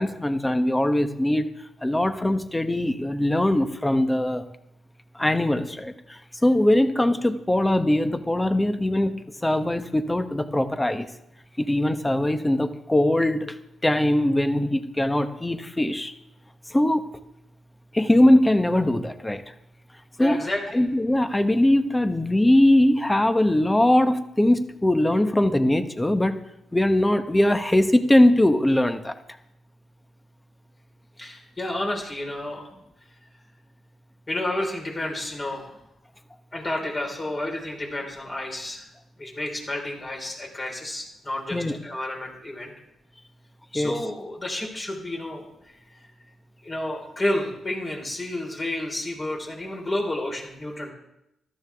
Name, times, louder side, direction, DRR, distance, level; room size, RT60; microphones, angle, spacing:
voice 1, 0.0-1.4 1.8-4.4 5.1-11.1 11.6-13.5 13.8-16.1 16.7-17.1 17.9-19.4 20.2-20.4 20.7-26.4 26.7-29.1 41.5-41.8 43.7-43.9, left 1 dB, 15° left, 9 dB, 1.2 m, -21 dB
voice 2, 20.2-20.8 31.2-32.7 34.3-35.7 36.5-38.8 39.2-42.7 43.7-45.5 46.6-50.9, left 1 dB, 35° left, 0 dB, 4.5 m, -30 dB
14.0 x 13.0 x 3.6 m, 0.83 s
hypercardioid pair, 45°, 0 cm